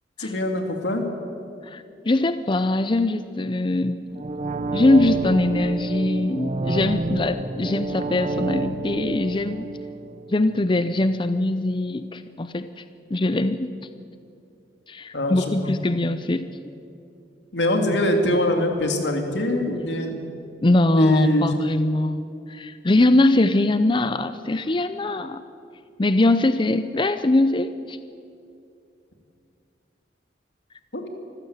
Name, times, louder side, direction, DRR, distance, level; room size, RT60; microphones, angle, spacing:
voice 1, 0.2-1.0 15.1-15.7 17.5-20.2 20.9-21.6 30.9-31.1, left 1 dB, 85° left, 4 dB, 2.9 m, -23 dB
voice 2, 1.6-4.0 4.7-9.7 10.3-12.8 13.1-13.7 14.9-16.5 20.6-25.4 26.0-28.0, left 2 dB, 30° left, 11 dB, 0.6 m, -22 dB
sound 1, 4.1-11.0 11.3-11.4, right 2 dB, 40° right, 0.7 m, -29 dB
25.0 x 15.0 x 8.2 m, 2.6 s
head